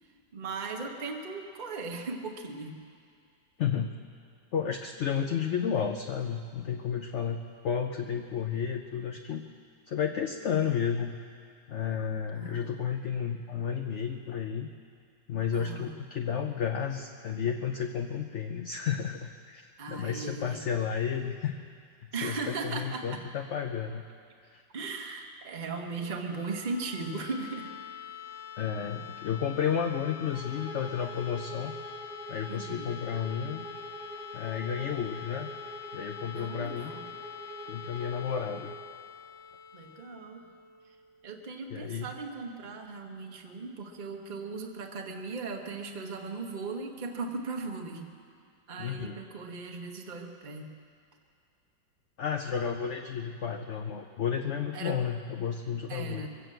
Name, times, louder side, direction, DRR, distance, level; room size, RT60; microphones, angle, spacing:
voice 1, 0.0-2.8 12.3-12.8 15.5-15.9 19.8-20.6 22.1-23.2 24.7-27.7 32.5-32.9 36.3-37.1 39.7-40.5 40.8-41.0 41.2-48.1 48.7-50.7 54.7-55.0 55.9-56.3, right 4 dB, 30° right, 2 dB, 1.1 m, -38 dB
voice 2, 3.6-3.9 4.5-9.4 9.9-11.1 11.7-14.7 15.3-21.5 22.2-24.0 24.5-24.6 28.6-31.7 32.3-33.6 34.3-35.5 35.9-36.9 37.7-38.7 41.7-42.1 48.8-49.2 52.2-56.3, left 7 dB, 65° left, 4 dB, 0.7 m, -32 dB
sound 1, 25.9-41.7, left 9 dB, 45° left, 1.3 m, -46 dB
Bowed string instrument, 30.3-38.8, right 2 dB, 65° right, 1.8 m, -45 dB
23.0 x 8.0 x 7.7 m, 2.3 s
omnidirectional pair, 1.9 m